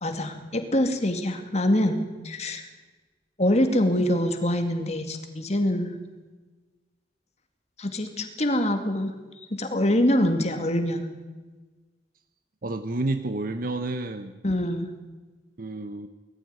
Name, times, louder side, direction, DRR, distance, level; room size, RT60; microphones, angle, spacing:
voice 1, 0.0-2.0 2.2-2.6 3.4-5.9 7.8-9.1 9.6-11.1 14.4-14.9, left 1 dB, 40° left, 6 dB, 2.3 m, -24 dB
voice 2, 12.6-14.3 15.6-16.1, right 2 dB, 50° right, 8 dB, 1.0 m, -30 dB
20.0 x 14.5 x 9.5 m, 1.3 s
head